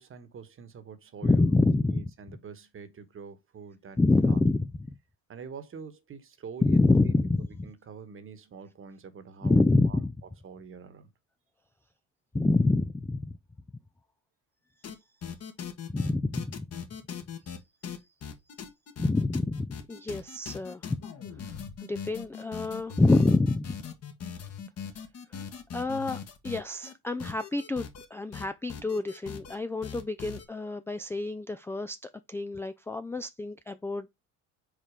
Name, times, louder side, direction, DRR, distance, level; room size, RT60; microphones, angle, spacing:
voice 1, 0.0-4.4 5.3-7.2 7.6-10.0 10.4-11.1, right 6 dB, 35° right, 1.3 m, -46 dB
voice 2, 1.2-2.1 4.0-4.7 6.6-7.7 9.4-10.1 12.3-13.3 15.9-16.7 19.0-20.8 21.9-23.8 25.7-34.1, left 2 dB, 5° left, 0.4 m, -26 dB
sound 1, 14.8-14.9 15.2-26.9 27.2-28.1 28.3-29.6 29.8-30.5, left 7 dB, 45° left, 1.5 m, -40 dB
5.0 x 4.2 x 5.0 m
hypercardioid pair, 75°, 35 cm